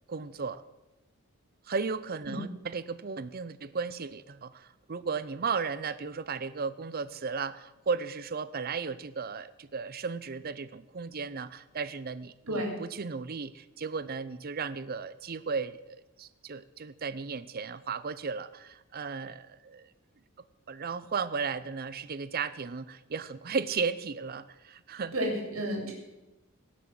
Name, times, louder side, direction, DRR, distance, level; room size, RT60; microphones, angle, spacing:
voice 1, 0.1-0.6 1.7-19.9 20.7-25.1, right 5 dB, 45° right, 15 dB, 0.6 m, -35 dB
voice 2, 25.1-25.9, equal, 80° right, -1 dB, 3.5 m, -31 dB
17.5 x 6.4 x 7.6 m, 1.0 s
head